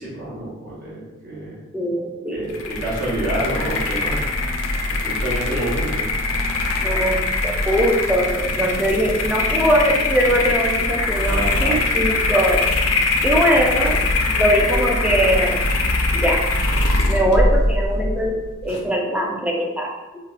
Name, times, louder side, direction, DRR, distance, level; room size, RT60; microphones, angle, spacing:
voice 1, 0.0-1.6 2.3-4.3 4.9-6.1 11.3-11.8, right 1 dB, 45° right, -6 dB, 0.8 m, -28 dB
voice 2, 1.7-2.7 5.5-5.7 6.8-12.7 13.2-14.0 14.3-15.6 16.1-16.4 17.0-19.9, equal, 5° right, -1 dB, 0.4 m, -21 dB
sound 1, 2.5-18.8, left 2 dB, 80° left, 0.4 m, -22 dB
4.0 x 2.1 x 2.4 m, 1.1 s
head